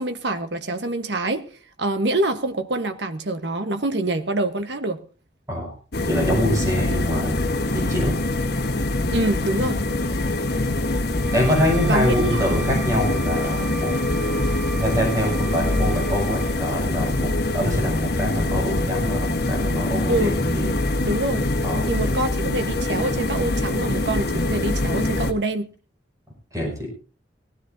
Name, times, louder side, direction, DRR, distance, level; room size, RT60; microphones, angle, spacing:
voice 1, 0.0-1.5 1.8-5.0 9.1-9.8 11.8-12.5 20.1-20.4 21.0-21.4 21.9-25.7, right 2 dB, 70° right, 1.3 m, -25 dB
sound 1, 5.9-25.3, left 2 dB, 60° left, 1.4 m, -24 dB
voice 2, 6.1-7.5 7.7-8.2 10.5-10.7 11.3-13.9 14.8-20.7 21.6-21.9 26.5-26.9, equal, 20° right, 6.0 m, -25 dB
Bowed string instrument, 11.2-16.6, right 8 dB, ahead, 5.5 m, -38 dB
18.5 x 15.5 x 2.7 m
head